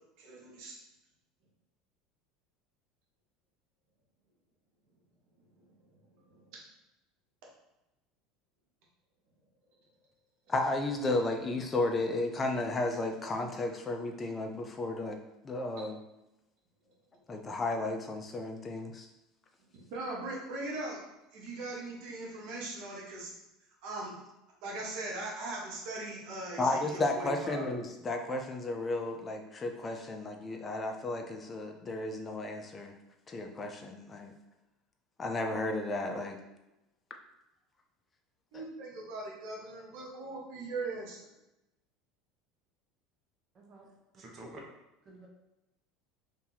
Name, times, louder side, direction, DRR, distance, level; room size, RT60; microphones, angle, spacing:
voice 1, 0.2-0.7 6.1-6.4 17.3-17.4 19.7-21.0 21.3-23.3 23.8-24.2 24.6-27.7 38.5-41.2, right 2 dB, 70° right, -3 dB, 1.2 m, -40 dB
voice 2, 10.5-15.2 15.4-16.0 17.3-19.1 26.6-32.9 33.3-34.3 35.2-36.4 38.5-38.6, left 2 dB, 25° left, 3 dB, 0.5 m, -33 dB
voice 3, 43.5-43.9 44.1-44.6 45.0-45.3, right 1 dB, 40° right, -2 dB, 1.0 m, -49 dB
2.8 x 2.7 x 3.9 m, 0.95 s
supercardioid pair, 95°, 0 cm